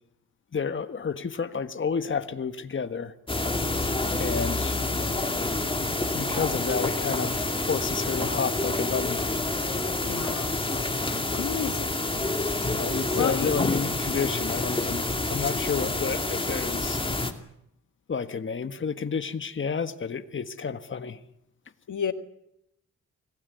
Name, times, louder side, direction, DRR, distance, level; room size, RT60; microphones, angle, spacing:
voice 1, 0.5-3.1 4.1-5.0 6.1-9.2 12.7-17.0 18.1-21.2, left 5 dB, 40° left, 9 dB, 1.6 m, -30 dB
sound 1, 3.3-17.3, left 2 dB, 15° left, 2.5 m, -28 dB
voice 2, 10.0-10.6 11.3-12.0 12.3-12.7 13.1-13.5 21.9-22.1, left 8 dB, 75° left, 9 dB, 1.6 m, -31 dB
25.5 x 17.0 x 9.5 m, 0.78 s
cardioid pair, 85°, 30 cm